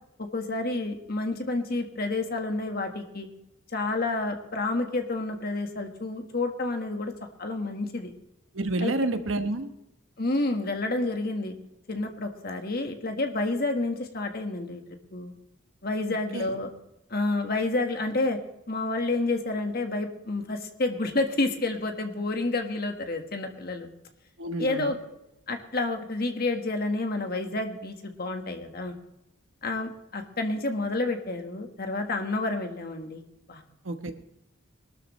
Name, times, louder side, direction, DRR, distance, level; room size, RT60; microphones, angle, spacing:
voice 1, 0.2-3.3 3.7-7.1 7.4-8.1 8.8-8.9 10.2-11.6 11.9-14.8 15.1-15.3 15.8-16.7 17.1-18.4 18.7-23.9 24.6-25.0 25.5-28.9 29.6-33.2 33.5-33.6, left 2 dB, 50° left, 5 dB, 1.5 m, -29 dB
voice 2, 8.5-9.7 16.3-16.5 24.4-24.9 33.8-34.1, right 2 dB, 70° right, 8 dB, 1.1 m, -29 dB
21.5 x 12.5 x 3.2 m, 0.88 s
head